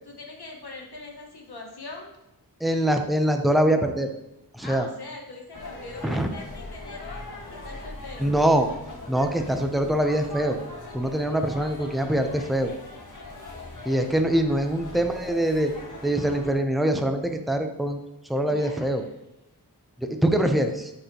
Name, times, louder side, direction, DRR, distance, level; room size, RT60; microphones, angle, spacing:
voice 1, 0.0-2.2 4.6-8.4 18.5-18.9, left 2 dB, 70° left, -1 dB, 1.6 m, -41 dB
voice 2, 2.6-4.1 4.5-4.9 6.0-6.3 8.2-8.7 9.1-10.6 10.9-12.7 13.8-15.7 16.0-19.0 20.0-20.9, right 1 dB, ahead, 5 dB, 0.7 m, -24 dB
sound 1, 5.5-16.5, left 2 dB, 50° left, 1.7 m, -41 dB
10.5 x 4.3 x 3.0 m, 0.90 s
wide cardioid pair, 65°, 40 cm